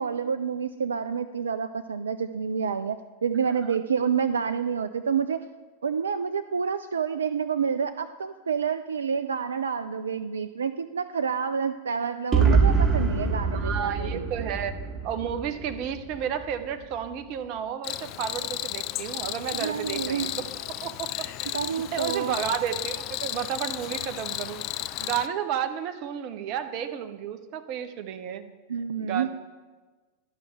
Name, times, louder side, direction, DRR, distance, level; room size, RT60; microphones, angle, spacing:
voice 1, 0.0-3.0 3.2-5.4 5.8-14.3 19.5-20.4 21.5-22.3 28.7-29.3, right 6 dB, 70° right, 11 dB, 0.3 m, -28 dB
sound 1, 12.3-16.2, right 5 dB, 25° right, 1.1 m, -24 dB
voice 2, 13.5-14.7 15.0-20.4 20.8-24.6 25.0-28.4 29.0-29.3, right 9 dB, 40° right, 9 dB, 0.7 m, -32 dB
Cricket, 17.8-25.3, left 14 dB, 40° left, 0.4 m, -34 dB
11.5 x 5.5 x 7.4 m, 1.3 s
figure-of-eight pair, 90°, 0 cm